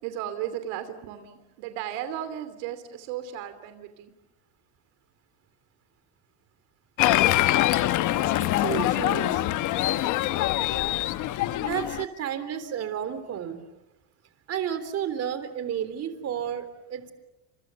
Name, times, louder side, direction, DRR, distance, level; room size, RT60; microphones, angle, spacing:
voice 1, 0.0-4.1, right 11 dB, 80° right, 10 dB, 2.9 m, -35 dB
Applause, 7.0-12.0, left 15 dB, 55° left, 1.2 m, -24 dB
voice 2, 8.4-9.4 11.4-13.6 14.5-17.1, right 9 dB, 40° right, 11 dB, 3.6 m, -32 dB
29.5 x 27.5 x 7.0 m, 0.98 s
cardioid pair, 130°, 37 cm